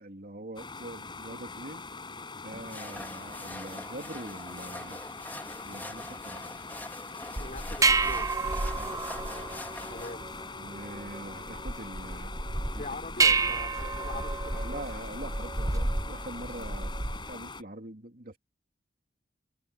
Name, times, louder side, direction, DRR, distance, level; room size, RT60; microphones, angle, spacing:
voice 1, 0.0-1.8 2.4-5.0 5.6-6.6 8.7-9.0 10.5-12.3 12.7-12.9 13.1-13.3 14.5-18.4, right 1 dB, 50° right, 3.1 m, -43 dB
sound 1, 0.6-17.6, left 4 dB, 25° left, 7.7 m, -43 dB
sound 2, 2.5-10.2, left 2 dB, 10° left, 3.5 m, -44 dB
voice 2, 7.4-8.3 8.9-9.6 9.9-10.3 12.8-14.8, left 2 dB, 40° left, 4.6 m, -43 dB
sound 3, 7.4-17.3, right 3 dB, 20° right, 0.8 m, -30 dB
head